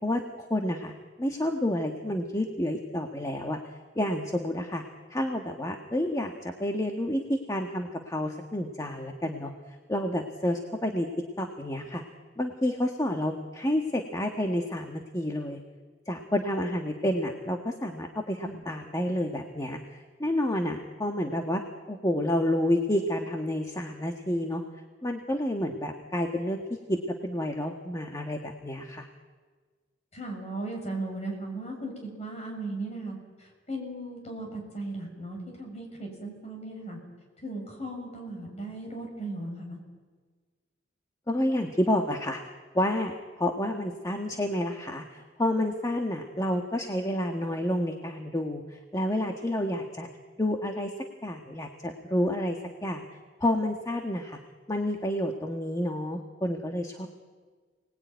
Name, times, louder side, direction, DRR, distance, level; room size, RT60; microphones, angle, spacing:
voice 1, 0.0-0.9 1.2-3.6 3.9-4.8 5.1-9.5 9.9-11.1 11.4-12.0 12.4-15.6 16.1-21.6 21.9-24.6 25.0-29.1 41.3-42.4 42.7-50.1 50.4-50.9 51.2-53.0 53.4-54.4 54.7-57.1, left 1 dB, 20° left, 3 dB, 1.5 m, -29 dB
voice 2, 30.1-31.9 32.2-37.0 37.4-39.8, right 2 dB, 35° left, 1 dB, 7.3 m, -37 dB
29.5 x 19.5 x 9.4 m, 1.5 s
head